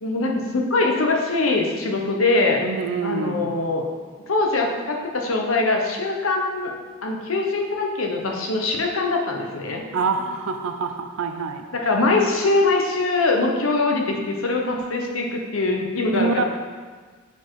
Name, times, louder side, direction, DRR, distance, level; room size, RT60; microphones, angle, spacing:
voice 1, 0.0-2.6 3.0-3.9 4.3-6.7 7.0-9.8 11.7-16.4, left 3 dB, 75° left, 1 dB, 1.0 m, -22 dB
voice 2, 2.6-3.5 9.9-11.6 16.1-16.4, right 4 dB, 90° right, 6 dB, 0.5 m, -25 dB
6.8 x 4.3 x 4.7 m, 1.5 s
head